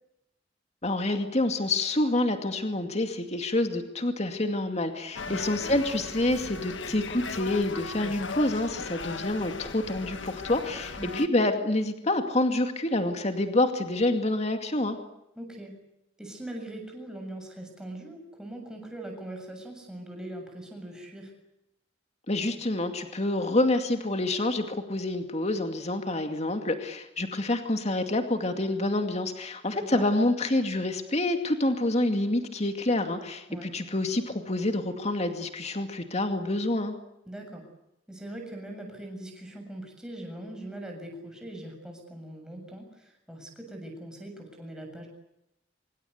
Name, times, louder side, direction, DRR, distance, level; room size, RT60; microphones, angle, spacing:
voice 1, 0.8-15.0 22.3-36.9, left 2 dB, 35° left, 6 dB, 2.4 m, -27 dB
sound 1, 5.1-11.3, left 4 dB, 75° left, 1.5 m, -37 dB
voice 2, 11.0-11.3 15.4-15.8 16.2-21.3 29.7-30.0 33.5-33.7 37.3-37.7 38.1-45.1, right 1 dB, 5° right, 2 dB, 7.3 m, -41 dB
25.5 x 23.5 x 8.3 m, 0.85 s
head